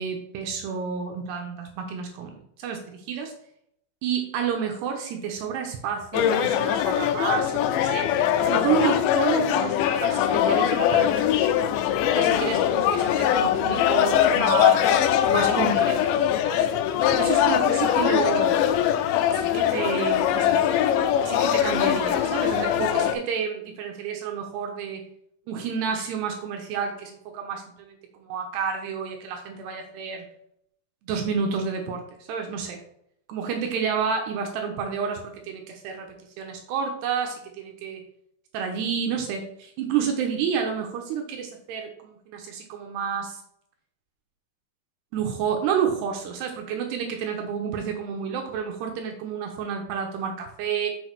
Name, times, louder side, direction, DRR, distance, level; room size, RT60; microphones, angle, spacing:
voice 1, 0.0-3.3 4.0-8.1 8.4-9.7 10.0-11.5 12.2-15.0 15.3-16.8 17.1-18.5 19.3-20.8 21.3-25.0 25.5-30.3 31.0-32.8 33.3-38.0 38.5-43.4 45.1-50.9, right 7 dB, 75° right, 3 dB, 2.6 m, -30 dB
sound 1, 6.1-23.1, left 10 dB, 85° left, 2.7 m, -22 dB
6.4 x 6.3 x 4.6 m, 0.72 s
omnidirectional pair, 5.8 m